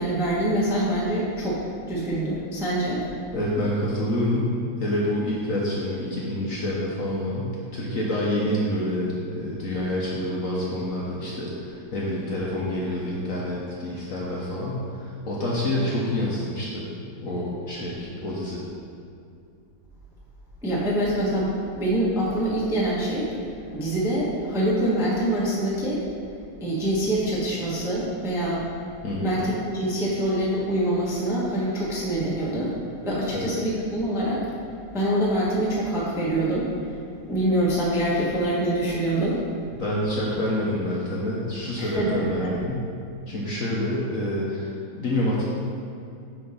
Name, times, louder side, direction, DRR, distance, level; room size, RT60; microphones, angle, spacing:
voice 1, 0.0-3.0 20.6-23.3 23.7-26.0 26.6-28.7 29.2-32.7 33.0-34.4 34.9-36.7 37.3-39.4 41.8-42.5, right 1 dB, ahead, -6 dB, 0.7 m, -25 dB
voice 2, 3.3-16.9 17.2-18.6 29.0-29.4 33.3-33.5 39.8-42.8 43.3-45.4, left 1 dB, 55° left, -5 dB, 1.0 m, -27 dB
7.7 x 3.5 x 5.6 m, 2.5 s
omnidirectional pair, 2.1 m